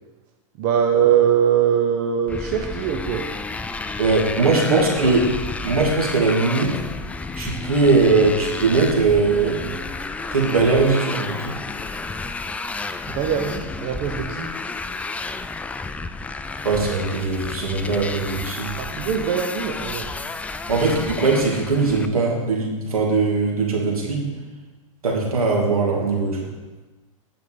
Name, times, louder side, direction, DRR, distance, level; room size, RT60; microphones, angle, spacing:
voice 1, 0.6-3.2 4.7-5.1 13.1-14.5 18.8-20.1 20.9-21.0, right 8 dB, 45° right, 3 dB, 1.0 m, -22 dB
Motorcycle, 2.3-22.1, left 3 dB, 10° left, 0.4 m, -31 dB
voice 2, 4.0-5.2 5.6-6.7 7.4-9.7 10.3-11.4 16.6-18.7 20.7-24.3 25.0-26.4, right 3 dB, 90° right, -1 dB, 2.6 m, -20 dB
9.3 x 5.8 x 5.3 m, 1.2 s
hypercardioid pair, 115°, 18 cm